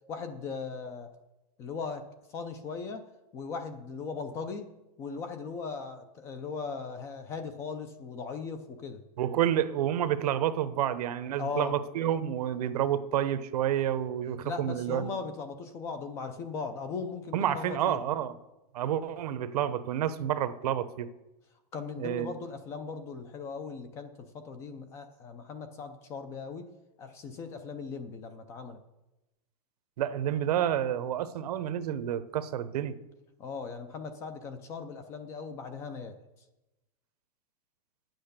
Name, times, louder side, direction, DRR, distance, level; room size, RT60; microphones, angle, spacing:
voice 1, 0.1-1.2 1.6-2.1 2.3-4.7 5.0-9.0 11.4-11.8 14.4-18.0 21.7-26.7 27.0-28.8 33.4-36.2, left 5 dB, 15° left, 9 dB, 0.3 m, -38 dB
voice 2, 9.2-15.1 17.3-18.3 18.7-21.1 22.0-22.4 30.0-33.0, right 10 dB, 75° right, 12 dB, 0.8 m, -29 dB
9.1 x 7.9 x 6.6 m, 0.99 s
supercardioid pair, 180°, 20 cm